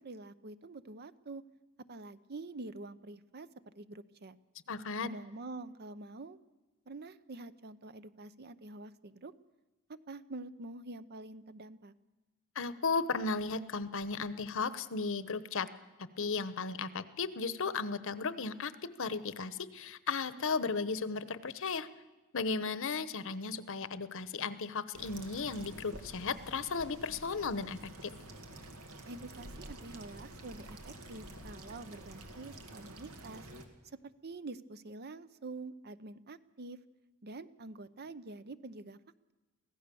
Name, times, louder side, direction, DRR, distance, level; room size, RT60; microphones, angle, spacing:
voice 1, 0.0-1.4 1.9-4.4 5.0-6.4 6.9-9.3 10.1-11.9 29.1-33.4 33.8-36.8 37.2-39.0, right 2 dB, 50° right, 14 dB, 0.8 m, -46 dB
voice 2, 4.7-5.1 12.5-15.7 16.2-21.9 22.3-28.1, left 4 dB, 65° left, 15 dB, 1.0 m, -35 dB
sound 1, 24.9-33.6, right 1 dB, 85° right, 2.3 m, -49 dB
24.0 x 16.5 x 7.0 m, 1.1 s
head